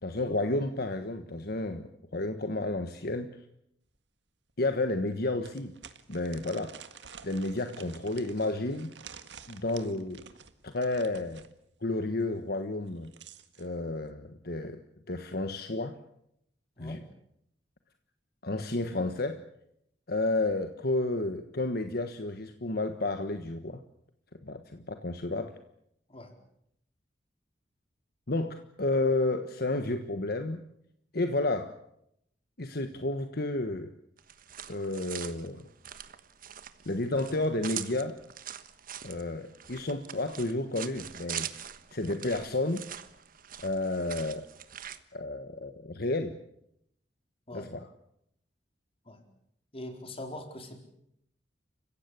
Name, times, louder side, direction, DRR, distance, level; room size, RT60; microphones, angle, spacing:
voice 1, 0.0-3.3 4.6-5.7 6.1-6.7 7.2-8.9 9.5-10.2 10.6-11.4 11.8-13.1 13.6-14.8 15.1-15.9 16.8-17.0 18.4-19.4 20.1-23.8 24.4-25.5 28.3-30.6 31.1-31.7 32.6-33.9 34.7-35.6 36.8-38.2 39.0-41.6 41.9-42.8 43.6-44.4 45.1-46.4 47.5-47.8, left 2 dB, 60° left, 8 dB, 1.4 m, -31 dB
sound 1, 3.9-4.0 4.5-4.6 5.4-11.5 12.8-13.7, right 7 dB, 85° right, 1.7 m, -50 dB
sound 2, 34.2-45.0, right 10 dB, 55° right, 1.3 m, -43 dB
voice 2, 49.7-50.8, left 1 dB, 35° left, 5 dB, 4.3 m, -42 dB
29.5 x 16.0 x 8.4 m, 0.75 s
head